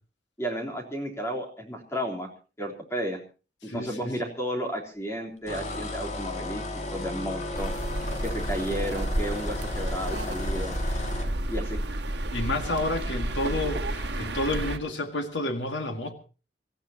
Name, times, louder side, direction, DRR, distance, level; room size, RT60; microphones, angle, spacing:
voice 1, 0.4-2.3 2.6-3.2 3.7-6.6 6.9-7.7 8.2-10.8 11.5-11.8, equal, 15° left, 1 dB, 3.6 m, -32 dB
voice 2, 3.6-4.2 12.3-16.1, left 1 dB, 85° left, 6 dB, 2.0 m, -30 dB
sound 1, 5.5-11.3, left 2 dB, 40° left, 2.3 m, -34 dB
sound 2, 7.5-14.8, right 1 dB, 70° right, 1.8 m, -31 dB
27.0 x 15.0 x 2.9 m, 0.34 s
head